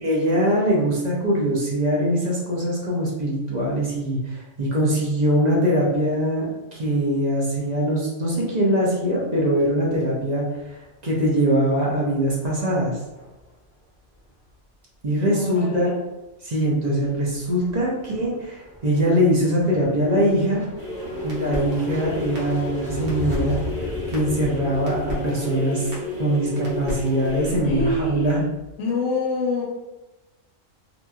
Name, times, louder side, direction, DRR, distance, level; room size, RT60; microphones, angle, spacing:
voice 1, 0.0-10.5 11.0-13.0 15.0-15.9 16.4-20.6 21.2-23.6 24.1-25.9 26.2-28.4, equal, 45° right, -5 dB, 0.6 m, -22 dB
sound 1, 9.6-10.3 10.6-11.0 11.4-13.8 14.1-14.5 16.6-25.1, equal, 10° left, 0.5 m, -38 dB
voice 2, 15.3-15.9 27.6-28.5 28.8-29.6, left 2 dB, 75° left, -2 dB, 0.9 m, -26 dB
sound 2, 20.8-28.7, left 2 dB, 65° right, 1.1 m, -31 dB
2.8 x 2.5 x 2.3 m, 1.0 s
omnidirectional pair, 1.3 m